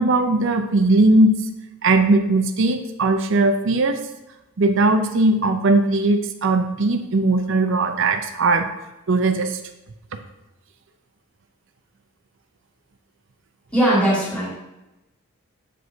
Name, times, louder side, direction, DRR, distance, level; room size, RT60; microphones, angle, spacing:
voice 1, 0.0-1.5 1.8-4.0 4.6-8.7 9.1-9.6, right 2 dB, 55° right, 6 dB, 0.6 m, -19 dB
voice 2, 13.7-14.6, right 1 dB, 5° left, -9 dB, 2.7 m, -19 dB
7.7 x 7.7 x 2.7 m, 0.96 s
head